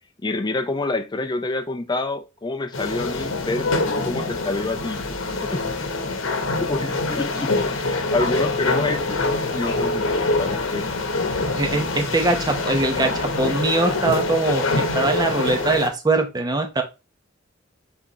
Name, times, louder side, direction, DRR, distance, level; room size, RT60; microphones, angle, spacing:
voice 1, 0.2-5.2 5.5-6.1 6.6-10.1 10.4-10.8 11.2-11.5, left 2 dB, 20° left, 0.5 m, -28 dB
sound 1, 2.7-15.9, left 2 dB, 80° left, 0.9 m, -25 dB
voice 2, 11.5-16.8, right 2 dB, 20° right, 0.8 m, -22 dB
4.2 x 3.7 x 2.9 m
head